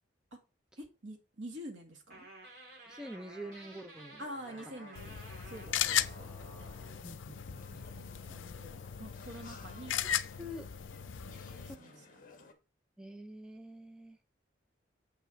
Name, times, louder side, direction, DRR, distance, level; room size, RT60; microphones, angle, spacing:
voice 1, 0.8-2.3 4.2-5.2 5.5-6.3 7.7-10.0 11.2-12.1, equal, 80° right, 2.0 m, -47 dB
sound 1, 2.1-7.0, right 1 dB, 55° right, 3.8 m, -53 dB
voice 2, 2.9-4.2 7.0-7.9 10.4-10.7 11.7-11.8 13.0-14.2, equal, 5° right, 0.6 m, -46 dB
sound 2, 4.4-12.5, left 3 dB, 45° left, 1.5 m, -57 dB
sound 3, 4.9-11.7, left 9 dB, 85° left, 0.5 m, -37 dB
7.3 x 5.9 x 4.4 m
head